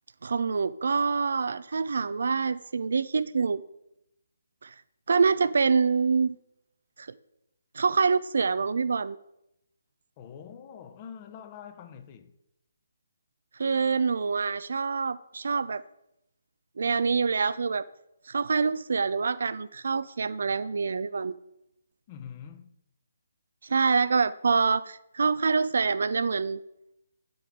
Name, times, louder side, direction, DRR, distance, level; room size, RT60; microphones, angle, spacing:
voice 1, 0.2-3.6 4.6-4.7 5.1-6.4 7.0-7.1 7.7-9.2 13.6-15.8 16.8-17.9 18.3-21.3 23.6-26.6, right 5 dB, 60° right, 0.3 m, -26 dB
voice 2, 10.2-12.3 22.1-22.7, left 8 dB, 30° left, 0.8 m, -45 dB
9.8 x 7.7 x 3.7 m
figure-of-eight pair, 140°, 0 cm